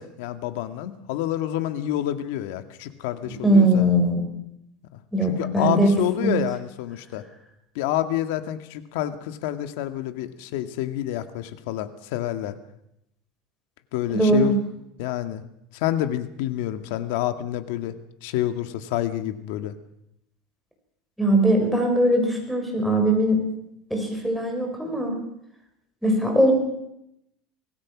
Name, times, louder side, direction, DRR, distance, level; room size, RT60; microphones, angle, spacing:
voice 1, 0.0-3.9 4.9-5.0 5.3-7.2 7.8-12.6 13.9-14.5 15.0-15.4 15.7-18.0 18.2-19.8, left 12 dB, 75° left, 9 dB, 1.9 m, -28 dB
voice 2, 3.4-4.2 5.1-5.9 6.2-6.4 14.1-14.5 21.2-23.4 23.9-25.2 26.0-26.5, right 1 dB, ahead, 3 dB, 5.8 m, -20 dB
25.5 x 18.5 x 6.2 m, 0.80 s
supercardioid pair, 150°, 0 cm